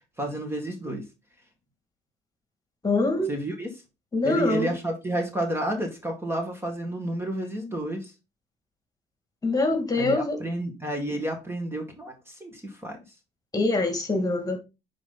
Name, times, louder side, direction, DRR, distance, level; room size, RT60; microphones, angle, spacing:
voice 1, 0.2-1.0 3.3-3.7 4.2-8.1 10.0-13.0, right 1 dB, 15° right, 2.0 m, -30 dB
voice 2, 2.8-3.3 4.1-4.7 9.4-10.4 13.5-14.6, left 2 dB, 20° left, 2.2 m, -24 dB
9.6 x 4.1 x 4.0 m
cardioid pair, 110°, 17 cm